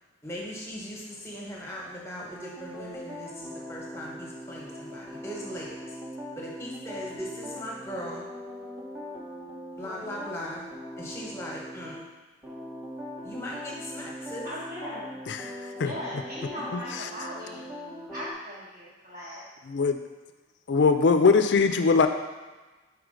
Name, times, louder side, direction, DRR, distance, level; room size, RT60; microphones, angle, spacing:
voice 1, 0.2-5.8 6.4-8.2 9.7-10.6 11.0-12.0 13.2-14.5, equal, 15° left, -3 dB, 1.2 m, -38 dB
sound 1, 2.3-12.0 12.4-18.3, left 1 dB, 5° right, 0.9 m, -41 dB
voice 2, 14.4-15.2 15.8-19.4, equal, 45° right, -10 dB, 1.2 m, -39 dB
voice 3, 15.3-15.9 16.7-16.8 19.7-20.0 20.7-22.1, left 4 dB, 65° left, 7 dB, 0.4 m, -21 dB
4.8 x 4.8 x 5.1 m, 1.2 s
head